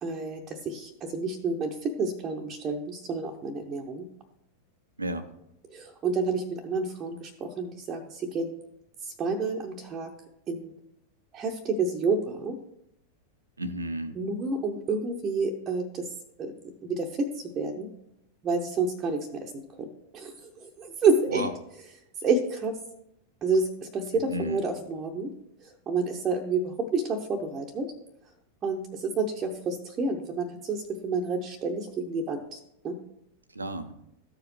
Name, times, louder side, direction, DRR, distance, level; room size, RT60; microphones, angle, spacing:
voice 1, 0.0-4.1 5.7-8.6 9.0-10.1 10.5-10.7 11.3-12.6 14.2-16.1 16.4-16.5 16.8-17.9 18.4-19.9 20.1-21.5 22.2-22.8 23.4-25.3 25.6-27.9 28.6-32.6 32.8-33.0, right 4 dB, 25° right, 0 dB, 0.8 m, -29 dB
voice 2, 13.6-14.2 21.3-21.5 24.3-24.6 33.5-33.9, right 1 dB, 80° right, 11 dB, 0.7 m, -32 dB
14.0 x 4.9 x 3.1 m, 0.80 s
figure-of-eight pair, 90°, 0 cm